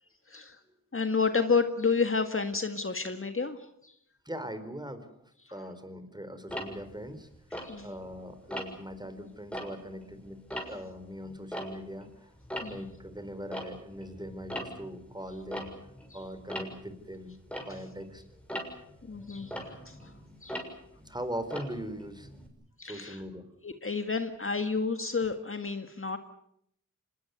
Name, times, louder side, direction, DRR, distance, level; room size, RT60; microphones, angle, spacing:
voice 1, 0.3-0.6 0.9-3.9 7.6-7.9 12.6-12.9 16.1-16.2 19.0-20.1 20.4-20.6 22.8-23.2 23.6-26.2, left 4 dB, 40° left, 8 dB, 1.8 m, -30 dB
voice 2, 4.3-5.1 5.5-7.3 7.8-10.4 10.7-12.3 12.7-15.7 16.1-17.3 17.7-18.2 20.9-22.3 22.8-23.5, equal, 10° right, 11 dB, 4.3 m, -40 dB
Tick-tock, 6.5-8.1 8.5-8.9 9.4-12.1 12.4-22.5, equal, 5° left, 6.8 m, -41 dB
25.5 x 20.5 x 8.2 m, 0.74 s
cardioid pair, 60°, 34 cm